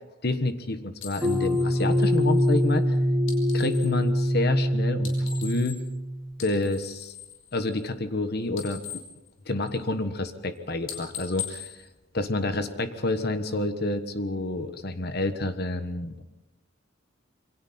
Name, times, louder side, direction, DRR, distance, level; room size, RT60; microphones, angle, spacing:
voice 1, 0.2-2.9 3.5-5.8 6.4-7.1 7.5-8.8 9.5-11.8 12.1-16.2, left 2 dB, 50° left, 9 dB, 1.3 m, -28 dB
sound 1, 1.0-4.0 4.9-6.0 6.3-8.2 8.4-10.0 10.4-10.6 10.8-12.7, left 8 dB, 85° left, 5.3 m, -41 dB
sound 2, 1.2-6.4, equal, 15° right, 1.3 m, -24 dB
27.5 x 23.0 x 4.4 m, 0.96 s
head